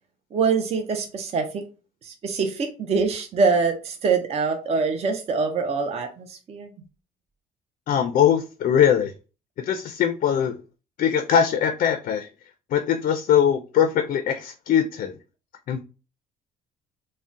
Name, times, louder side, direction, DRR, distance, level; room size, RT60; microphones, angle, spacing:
voice 1, 0.3-1.6 2.0-6.7, right 4 dB, 40° right, 0.5 m, -24 dB
voice 2, 7.9-9.1 9.6-10.5 11.0-12.3 12.7-15.1 15.7-15.8, left 8 dB, 50° left, 0.4 m, -21 dB
3.6 x 2.1 x 2.5 m
cardioid pair, 110°, 17 cm